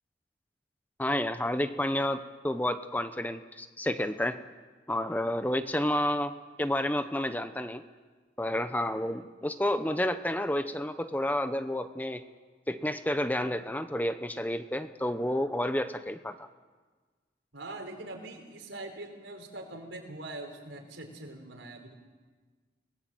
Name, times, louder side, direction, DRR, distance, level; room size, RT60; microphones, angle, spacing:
voice 1, 1.0-4.4 4.9-6.3 6.6-7.8 8.4-12.2 12.7-16.5, left 1 dB, 10° left, 10 dB, 0.8 m, -30 dB
voice 2, 17.5-21.9, right 2 dB, 90° right, 3 dB, 4.8 m, -43 dB
29.5 x 20.0 x 7.8 m, 1.4 s
head